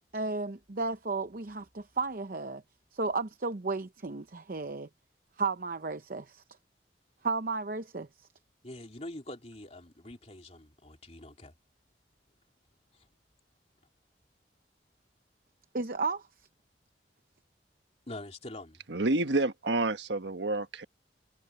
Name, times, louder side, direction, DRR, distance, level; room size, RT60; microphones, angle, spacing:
voice 1, 0.1-2.6 2.9-4.9 5.4-6.4 7.2-8.1 15.7-16.3, right 3 dB, 50° right, 0.8 m, -33 dB
voice 2, 8.6-11.5 12.9-13.1 18.1-18.8, left 1 dB, 35° left, 3.3 m, -44 dB
voice 3, 18.9-20.9, right 2 dB, 75° right, 1.3 m, -29 dB
head